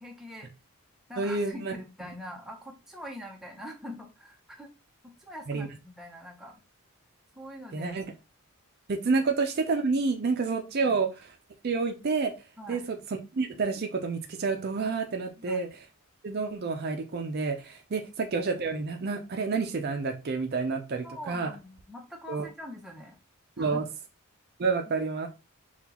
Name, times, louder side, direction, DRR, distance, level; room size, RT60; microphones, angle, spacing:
voice 1, 0.0-0.5 1.1-4.7 5.0-6.6 7.4-7.9 10.8-11.0 12.6-12.9 15.4-15.7 18.0-18.1 21.0-23.2 23.6-23.9 24.9-25.0, left 1 dB, ahead, 0 dB, 0.7 m, -44 dB
voice 2, 1.2-1.7 5.5-5.7 7.7-8.0 8.9-11.1 11.6-12.3 12.7-15.7 16.2-21.5 22.3-22.4 23.6-23.8 24.6-25.3, right 4 dB, 45° right, 5 dB, 0.4 m, -29 dB
5.7 x 2.3 x 2.9 m, 0.29 s
head